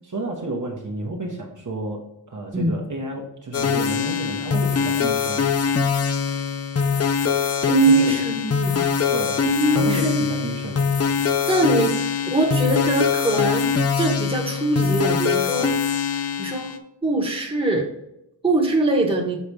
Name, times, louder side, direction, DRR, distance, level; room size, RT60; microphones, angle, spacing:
voice 1, 0.1-5.4 7.9-8.2 9.1-10.9, right 2 dB, 40° right, -1 dB, 1.1 m, -31 dB
sound 1, 3.5-16.8, left 6 dB, 35° left, 0.5 m, -23 dB
voice 2, 7.7-9.0 9.4-10.3 11.5-12.0 12.3-13.7 14.0-15.7 16.4-16.8 17.0-17.9 18.4-19.4, right 2 dB, 10° right, -2 dB, 1.3 m, -22 dB
6.6 x 4.0 x 4.8 m, 0.83 s
wide cardioid pair, 130°, 46 cm